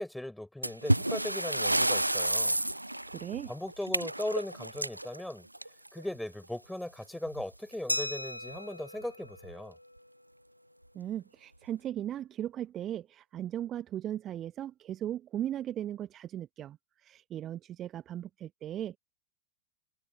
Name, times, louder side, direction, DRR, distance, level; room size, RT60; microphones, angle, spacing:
voice 1, 0.0-2.6 3.5-5.5 5.9-9.8, left 1 dB, 5° left, 5.7 m, -38 dB
sound 1, 0.6-6.0 7.3-7.4 7.7-7.8 8.5-8.6 9.3-9.5, right 1 dB, 85° right, 0.3 m, -30 dB
voice 2, 3.1-3.5 10.9-19.0, right 11 dB, 30° right, 1.0 m, -37 dB
Glass, 7.9-10.4, left 1 dB, 85° left, 0.9 m, -38 dB
figure-of-eight pair, 90°, 0 cm